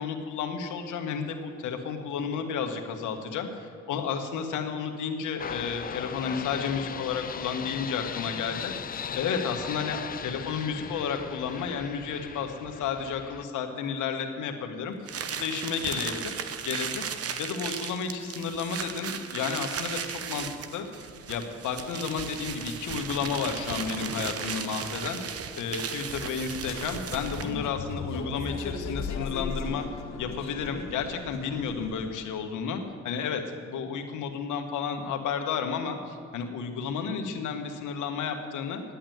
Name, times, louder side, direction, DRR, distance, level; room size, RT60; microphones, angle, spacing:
voice 1, 0.0-15.1 15.4-16.3 16.6-17.1 17.4-29.9 30.2-38.8, left 6 dB, 80° left, 5 dB, 1.5 m, -32 dB
sound 1, 5.4-13.4, left 7 dB, 30° left, 0.4 m, -38 dB
sound 2, 15.0-27.6, right 7 dB, 50° right, 0.9 m, -36 dB
sound 3, 26.6-32.2, left 4 dB, 65° left, 1.4 m, -36 dB
10.5 x 8.7 x 9.2 m, 2.2 s
cardioid pair, 90°, 30 cm